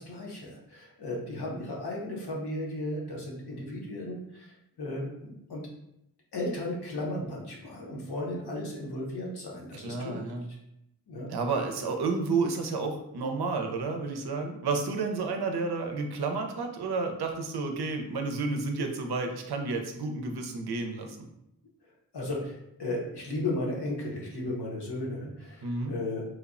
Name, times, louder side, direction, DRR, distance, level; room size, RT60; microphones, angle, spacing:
voice 1, 0.0-5.6 6.3-10.2 11.1-11.3 22.1-26.3, left 1 dB, 85° left, -3 dB, 0.8 m, -35 dB
voice 2, 9.8-10.5 11.3-21.3 25.6-25.9, right 4 dB, 75° right, 4 dB, 0.5 m, -31 dB
3.1 x 2.0 x 2.4 m, 0.82 s
cardioid pair, 40°, 39 cm